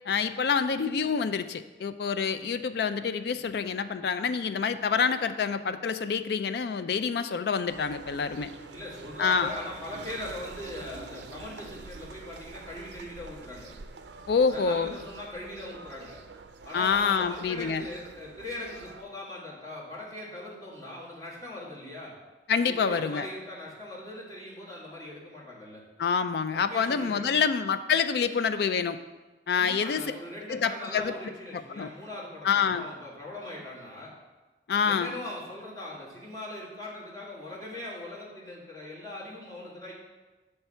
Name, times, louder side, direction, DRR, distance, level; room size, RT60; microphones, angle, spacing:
voice 1, 0.1-8.5 9.2-9.5 14.3-15.0 16.7-17.9 22.5-23.3 26.0-29.0 29.5-30.1 30.5-31.1 31.5-31.9 32.4-32.8 34.7-35.1, left 6 dB, 60° left, 11 dB, 0.3 m, -27 dB
sound 1, 7.7-19.0, right 4 dB, 75° right, 0.4 m, -46 dB
voice 2, 8.7-13.7 14.5-16.2 16.6-22.1 22.6-25.8 26.5-27.3 29.5-34.1 34.8-39.9, left 1 dB, 20° left, -7 dB, 1.7 m, -40 dB
7.0 x 3.3 x 5.5 m, 1.2 s
head